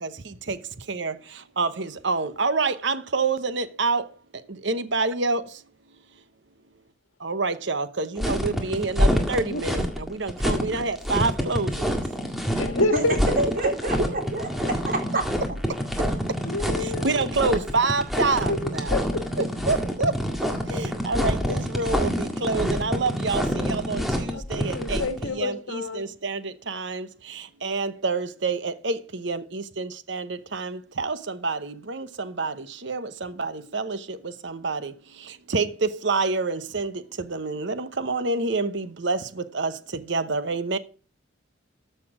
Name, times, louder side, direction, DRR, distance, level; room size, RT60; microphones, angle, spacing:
voice 1, 0.0-0.6 0.9-1.1 1.6-4.1 4.6-5.4 7.2-11.9 13.4-14.1 16.8-18.9 19.4-20.2 20.7-34.9 35.5-40.8, right 3 dB, 60° right, 0.9 m, -27 dB
sound 1, 8.2-25.2, equal, ahead, 1.8 m, -26 dB
voice 2, 12.6-13.4 16.5-17.3 18.5-19.4 24.3-26.1, left 2 dB, 80° left, 1.9 m, -28 dB
voice 3, 13.6-14.5 14.8-15.2, right 2 dB, 45° right, 3.5 m, -28 dB
13.5 x 6.8 x 5.0 m
head